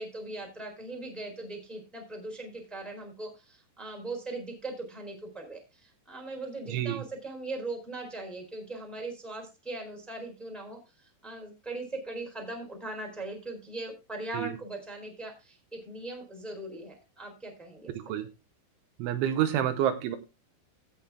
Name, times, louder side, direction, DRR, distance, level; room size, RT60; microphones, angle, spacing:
voice 1, 0.0-18.2, right 2 dB, ahead, 1 dB, 3.1 m, -40 dB
voice 2, 6.7-7.0 14.3-14.5 18.0-18.3 19.0-20.2, right 10 dB, 80° right, 9 dB, 3.2 m, -28 dB
15.5 x 6.7 x 3.6 m, 0.27 s
omnidirectional pair, 5.7 m